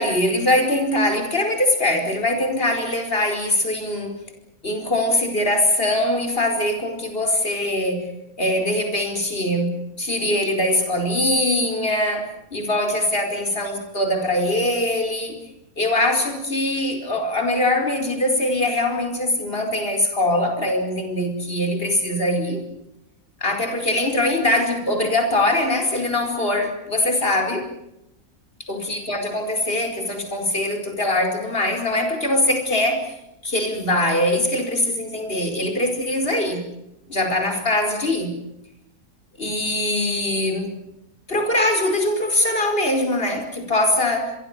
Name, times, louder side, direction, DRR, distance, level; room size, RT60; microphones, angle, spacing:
voice 1, 0.0-4.1 4.6-8.1 8.4-15.4 15.8-22.6 23.4-27.7 28.7-33.1 33.4-36.6 37.1-38.3 39.4-40.7 41.3-44.4, left 1 dB, 40° left, 5 dB, 5.0 m, -22 dB
27.5 x 22.5 x 6.8 m, 0.83 s
omnidirectional pair, 1.6 m